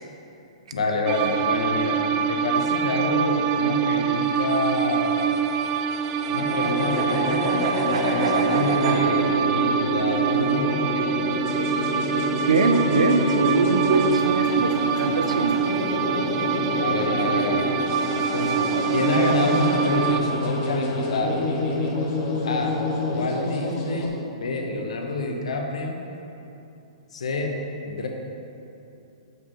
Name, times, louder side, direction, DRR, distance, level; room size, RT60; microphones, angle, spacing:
voice 1, 0.7-2.0 2.3-5.3 6.3-7.5 7.8-11.3 16.8-17.7 18.3-21.4 22.4-22.8 23.1-26.0 27.1-27.5 27.9-28.1, left 2 dB, 75° left, 2 dB, 1.0 m, -27 dB
sound 1, 1.1-20.2, right 7 dB, 35° right, 0.4 m, -25 dB
sound 2, 4.3-9.0, right 3 dB, 60° right, 1.0 m, -31 dB
sound 3, 6.5-24.1, left 2 dB, 35° left, 1.3 m, -28 dB
voice 2, 12.5-15.6, right 3 dB, 80° right, 6 dB, 0.6 m, -22 dB
6.5 x 5.1 x 5.6 m, 2.8 s
hypercardioid pair, 125°, 3 cm